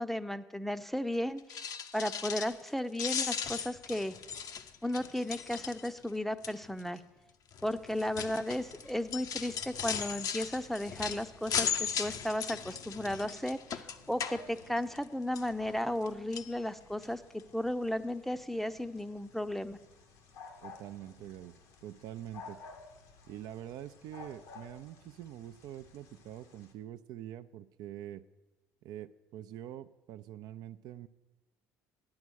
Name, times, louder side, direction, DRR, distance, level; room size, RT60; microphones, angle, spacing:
voice 1, 0.0-1.6 1.9-4.1 4.8-7.0 7.6-17.2 17.5-19.8, left 1 dB, 5° left, 12 dB, 0.6 m, -34 dB
sound 1, 1.4-2.7 2.9-6.1 6.4-6.8 7.5-15.0 15.4-16.1 16.3-16.5 17.0-17.1 17.4-17.5, left 7 dB, 55° left, 0.7 m, -37 dB
sound 2, 7.6-26.7, left 4 dB, 80° left, 1.4 m, -55 dB
voice 2, 20.6-21.5 21.8-22.6 23.3-28.2 28.8-31.1, right 12 dB, 65° right, 11 dB, 0.4 m, -45 dB
9.5 x 8.8 x 6.3 m, 1.1 s
hypercardioid pair, 65°, 7 cm